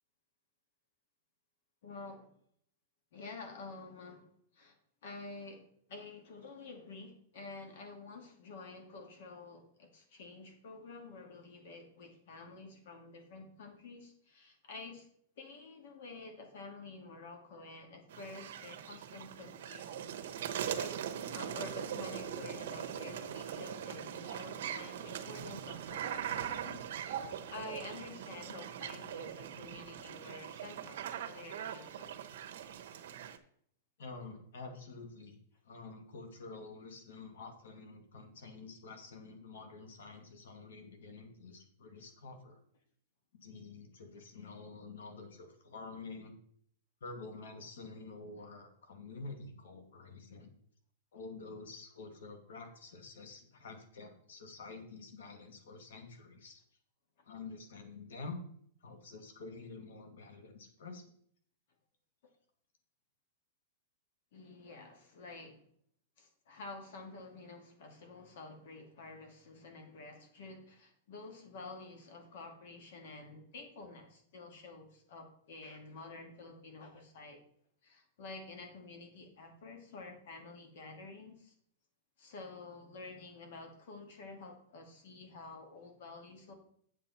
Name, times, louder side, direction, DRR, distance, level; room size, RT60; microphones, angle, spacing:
voice 1, 1.8-2.3 3.1-4.3 4.5-4.8 5.0-15.1 15.4-20.0 20.7-21.0 21.3-31.0 31.3-32.2 64.3-65.6 66.2-77.4 77.8-81.5 82.2-86.5, left 3 dB, 65° left, 4 dB, 2.4 m, -49 dB
sound 1, 18.1-33.4, right 9 dB, 70° right, 1.0 m, -41 dB
voice 2, 34.0-35.4 35.6-42.6 43.4-46.4 47.0-50.5 51.1-56.6 57.3-58.4 58.8-61.0, left 3 dB, 85° left, 6 dB, 2.1 m, -48 dB
8.5 x 7.5 x 4.3 m, 0.64 s
supercardioid pair, 155°, 0 cm